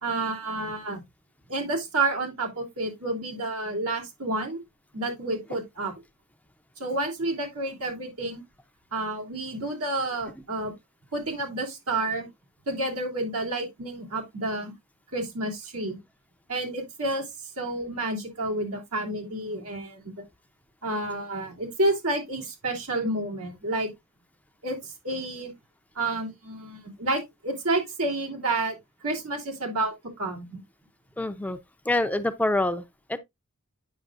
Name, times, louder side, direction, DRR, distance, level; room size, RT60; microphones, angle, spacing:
voice 1, 0.0-1.0 1.5-4.6 4.9-5.9 6.8-8.4 8.9-10.7 11.1-12.3 12.7-14.7 15.1-16.0 16.5-20.2 20.8-23.9 24.6-25.5 25.9-28.8 29.0-30.6, right 2 dB, 90° right, 2.9 m, -30 dB
voice 2, 31.2-31.6 31.9-33.2, left 1 dB, 5° left, 0.5 m, -26 dB
9.1 x 6.1 x 2.4 m
head